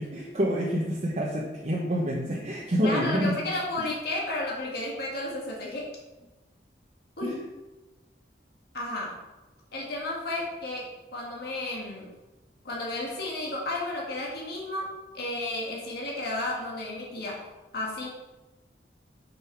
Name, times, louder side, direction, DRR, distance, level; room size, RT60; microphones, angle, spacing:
voice 1, 0.0-3.3 3.8-3.9 7.2-7.4, equal, 40° right, -3 dB, 1.0 m, -27 dB
voice 2, 2.8-5.9 7.2-7.4 8.7-9.2 9.7-12.1 12.6-17.4 17.7-18.1, left 2 dB, 65° left, -3 dB, 1.6 m, -33 dB
6.9 x 5.7 x 4.5 m, 1.1 s
head